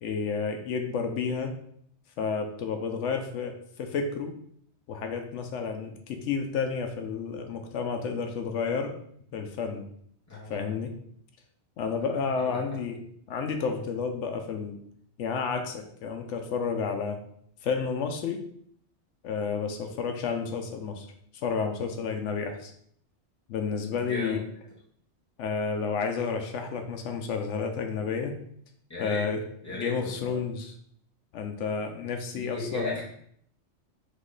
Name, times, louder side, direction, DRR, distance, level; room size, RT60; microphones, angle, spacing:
voice 1, 0.0-1.5 2.2-4.3 4.9-8.9 9.3-9.8 10.5-10.9 11.8-13.0 13.3-14.8 15.2-17.2 17.6-18.4 19.2-21.1 21.3-22.7 23.5-24.4 25.4-28.3 29.0-30.7 31.3-32.9, left 5 dB, 90° left, 5 dB, 0.9 m, -31 dB
voice 2, 10.3-10.8 11.9-12.0 12.4-12.6 23.9-24.5 28.9-29.3 29.6-30.3 32.3-33.0, left 2 dB, 15° left, -7 dB, 1.5 m, -36 dB
3.8 x 3.1 x 3.8 m, 0.66 s
omnidirectional pair, 1.2 m